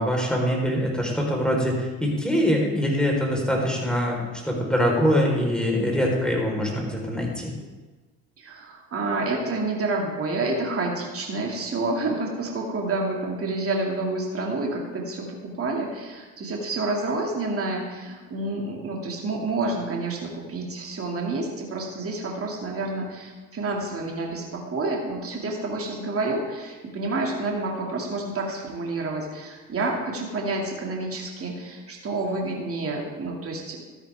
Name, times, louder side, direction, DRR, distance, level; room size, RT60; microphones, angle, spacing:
voice 1, 0.0-7.5, equal, ahead, -1 dB, 4.2 m, -23 dB
voice 2, 8.4-33.8, right 2 dB, 35° right, -1 dB, 2.5 m, -29 dB
13.0 x 10.5 x 3.6 m, 1.3 s
hypercardioid pair, 65°, 40 cm